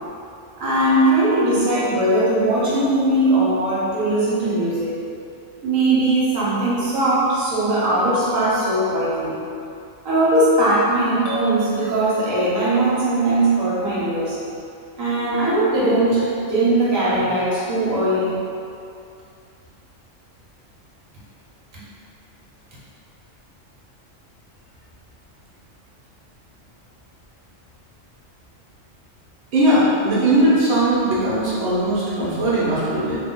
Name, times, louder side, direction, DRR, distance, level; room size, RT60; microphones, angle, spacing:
voice 1, 0.6-4.9 5.6-9.4 10.0-14.4 15.0-18.4, right 1 dB, 90° right, -8 dB, 1.2 m, -19 dB
sound 1, 11.3-13.2, right 1 dB, 60° left, 0.7 m, -34 dB
voice 2, 29.5-33.2, right 1 dB, 70° right, -9 dB, 1.1 m, -19 dB
3.1 x 2.1 x 3.6 m, 2.5 s
omnidirectional pair, 1.3 m